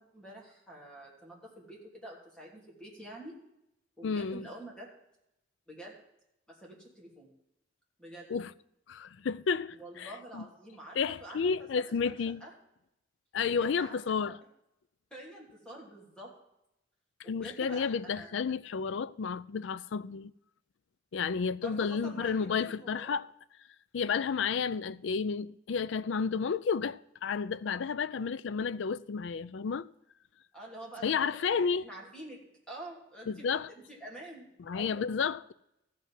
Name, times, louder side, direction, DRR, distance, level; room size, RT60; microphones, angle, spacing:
voice 1, 0.0-3.3 4.0-4.9 5.7-6.0 6.5-7.3 8.0-8.3 9.7-12.5 13.5-14.4 15.1-16.3 17.2-18.3 21.6-23.1 30.5-32.4 32.7-35.1, right 1 dB, 5° left, 3.0 m, -47 dB
voice 2, 4.0-4.5 8.3-8.5 8.9-10.4 10.9-12.4 13.3-14.4 17.3-20.3 21.1-23.3 23.9-29.9 31.0-31.8 33.3-33.7 34.7-35.5, left 5 dB, 70° left, 0.4 m, -31 dB
14.5 x 5.5 x 7.5 m
head